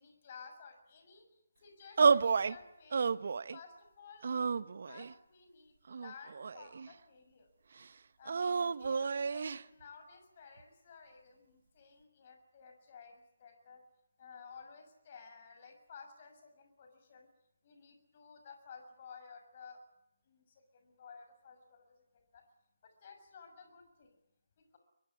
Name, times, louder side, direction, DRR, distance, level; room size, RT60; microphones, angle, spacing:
voice 1, 0.0-3.1 3.5-4.3 4.6-7.5 8.2-13.8 14.2-17.3 17.6-19.8 20.3-22.0 22.3-22.4 22.8-24.1, left 5 dB, 40° left, 6 dB, 6.4 m, -55 dB
sound 1, 2.0-2.6 2.9-3.6 4.2-5.1 5.9-6.9 8.3-9.6, right 5 dB, 55° right, 1.0 m, -31 dB
23.5 x 22.5 x 8.7 m, 0.86 s
figure-of-eight pair, 150°, 0 cm